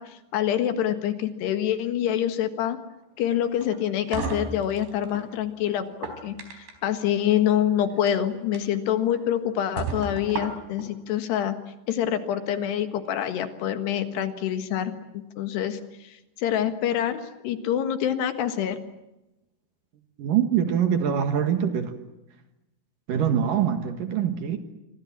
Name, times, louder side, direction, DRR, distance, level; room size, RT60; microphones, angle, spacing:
voice 1, 0.0-2.8 3.2-5.9 6.2-11.6 11.9-14.9 15.4-18.8, left 10 dB, 75° left, 3.7 m, -26 dB
sound 1, 3.6-5.3 5.8-6.9 7.9-8.1 8.5-8.6 9.1-9.2 9.8-10.9, right 4 dB, 90° right, 6.3 m, -34 dB
voice 2, 20.2-21.9 23.1-24.6, right 8 dB, 60° right, 2.9 m, -24 dB
26.5 x 25.0 x 7.4 m
omnidirectional pair, 4.9 m